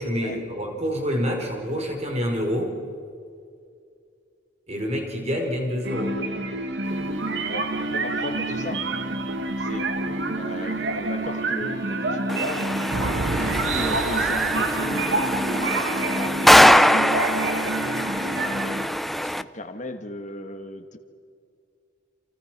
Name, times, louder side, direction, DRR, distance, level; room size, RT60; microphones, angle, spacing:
voice 1, 0.0-2.7 4.7-6.2, equal, 35° right, 2 dB, 4.8 m, -27 dB
sound 1, 5.8-18.9, right 2 dB, 65° right, 2.0 m, -28 dB
sound 2, 6.8-10.6 11.0-11.1 11.5-11.9 12.7-16.0 16.8-16.9 17.4-17.5, right 4 dB, 90° right, 1.1 m, -34 dB
voice 2, 7.5-8.9 9.6-9.9 10.4-12.7 13.5-17.3 18.3-18.9 19.2-21.0, left 1 dB, 40° left, 7 dB, 1.9 m, -36 dB
sound 3, 12.3-19.4, equal, ahead, 0.6 m, -22 dB
29.5 x 28.5 x 6.2 m, 2.3 s
head